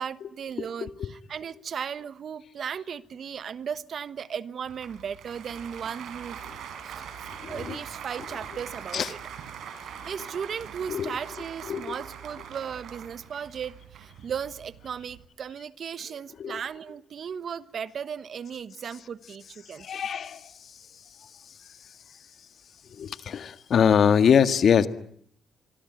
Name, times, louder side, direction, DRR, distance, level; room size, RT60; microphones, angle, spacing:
voice 1, 0.0-6.4 6.8-7.0 7.4-9.2 9.8-19.9, right 7 dB, 55° right, 14 dB, 1.2 m, -36 dB
Applause, 4.7-15.3, right 8 dB, 75° right, 4.5 m, -42 dB
voice 2, 7.4-7.8 8.9-9.1 10.9-11.2 11.7-12.0 16.4-16.6 19.8-20.7 22.9-24.9, left 7 dB, 60° left, 10 dB, 1.8 m, -23 dB
25.0 x 24.5 x 9.3 m, 0.65 s
cardioid pair, 90°, 0 cm